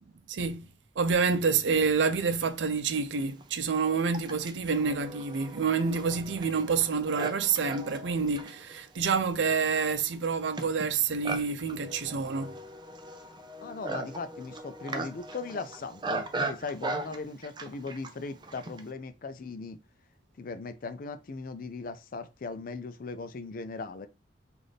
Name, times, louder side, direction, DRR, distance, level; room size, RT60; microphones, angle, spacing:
voice 1, 0.3-0.7 1.0-12.5, right 5 dB, 90° right, 0.5 m, -28 dB
Livestock farm animals working animals, 2.1-2.2 3.0-18.9, right 2 dB, 25° right, 0.4 m, -39 dB
voice 2, 13.6-19.8 20.4-24.1, left 4 dB, 50° left, 0.4 m, -38 dB
3.3 x 2.5 x 4.0 m
head